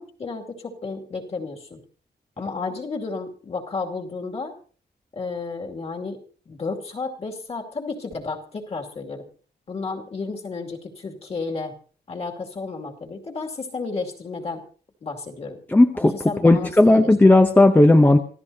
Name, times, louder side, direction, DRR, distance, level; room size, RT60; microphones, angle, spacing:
voice 1, 0.0-1.8 2.4-4.5 5.1-6.2 6.5-9.2 9.7-11.7 12.1-14.6 15.0-15.6 15.9-17.1, left 4 dB, 35° left, 1 dB, 2.5 m, -32 dB
voice 2, 15.7-16.1 16.4-18.2, left 2 dB, 10° left, 5 dB, 0.7 m, -14 dB
27.0 x 15.0 x 2.8 m, 0.41 s
wide cardioid pair, 175°, 18 cm